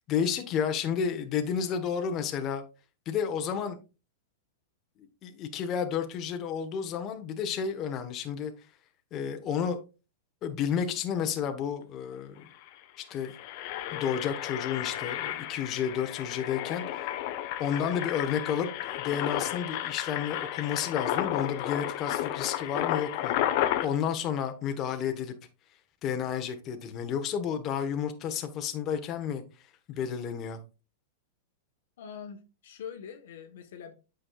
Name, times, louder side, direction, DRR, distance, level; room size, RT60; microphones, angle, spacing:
voice 1, 0.1-2.6 3.1-3.8 5.2-8.5 9.1-9.8 10.4-12.5 13.0-13.3 13.9-17.0 17.6-23.3 23.8-25.3 26.0-29.4 29.9-30.6, left 8 dB, 35° left, 1.2 m, -31 dB
Engine, 12.1-12.2 12.5-12.7 13.1-23.9, left 12 dB, 50° left, 0.9 m, -32 dB
voice 2, 32.0-33.9, left 8 dB, 70° left, 1.2 m, -43 dB
8.7 x 6.4 x 2.4 m
hypercardioid pair, 135°, 0 cm